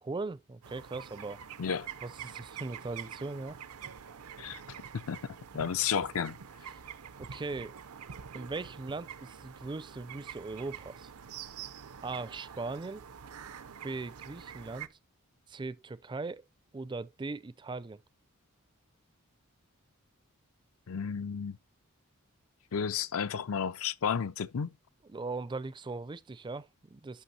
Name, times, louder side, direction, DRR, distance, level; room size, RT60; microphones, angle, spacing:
voice 1, 0.0-1.4 2.0-3.6 7.2-7.8 8.3-11.1 12.0-13.0 13.8-14.9 15.5-16.4 16.7-18.0 25.1-27.2, right 3 dB, 20° right, 0.4 m, -39 dB
sound 1, 0.6-14.9, right 8 dB, 75° right, 0.6 m, -46 dB
voice 2, 4.9-6.4 20.9-21.6 22.7-24.7, left 7 dB, 65° left, 0.5 m, -32 dB
11.5 x 5.9 x 2.8 m
head